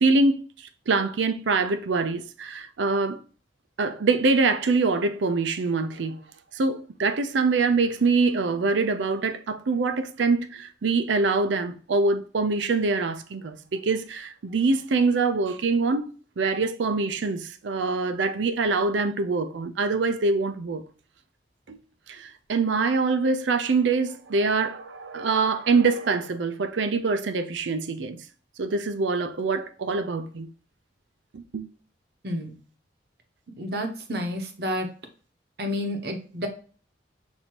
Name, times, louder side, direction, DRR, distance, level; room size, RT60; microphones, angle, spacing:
voice 1, 0.0-3.2 3.8-6.2 6.5-16.0 16.4-20.8 21.7-21.8 22.1-28.2 28.6-30.5 31.3-31.7, right 3 dB, 85° right, 0.5 m, -24 dB
voice 2, 32.2-32.6 33.6-34.9 35.6-36.5, equal, 60° right, 0.8 m, -30 dB
6.0 x 2.7 x 2.9 m
head